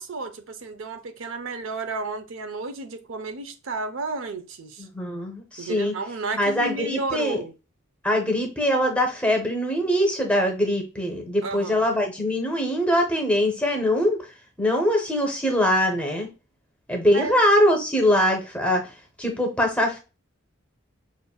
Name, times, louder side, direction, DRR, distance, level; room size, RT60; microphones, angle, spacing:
voice 1, 0.0-4.9 5.6-7.5 11.4-11.9 17.1-17.4, right 3 dB, 75° right, 0.5 m, -32 dB
voice 2, 4.8-5.9 6.4-7.4 8.0-14.2 14.6-16.3 16.9-18.9 19.2-20.0, equal, 5° left, 0.6 m, -22 dB
5.2 x 2.5 x 2.3 m
head